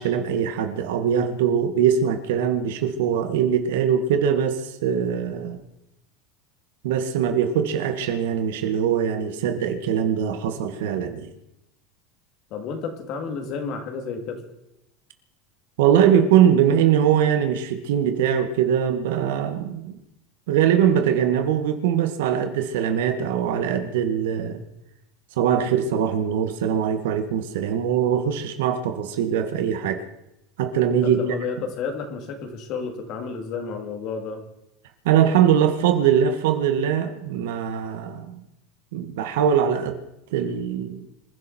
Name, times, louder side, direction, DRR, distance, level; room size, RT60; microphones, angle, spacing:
voice 1, 0.0-5.6 6.8-11.3 15.8-20.0 20.5-24.6 25.4-30.0 30.6-31.2 35.1-38.4 38.9-40.0 40.3-41.1, right 8 dB, 80° right, 7 dB, 2.0 m, -22 dB
voice 2, 12.5-14.4 31.0-34.4, left 5 dB, 55° left, 4 dB, 3.3 m, -31 dB
26.0 x 11.0 x 4.6 m, 0.87 s
supercardioid pair, 125°, 0 cm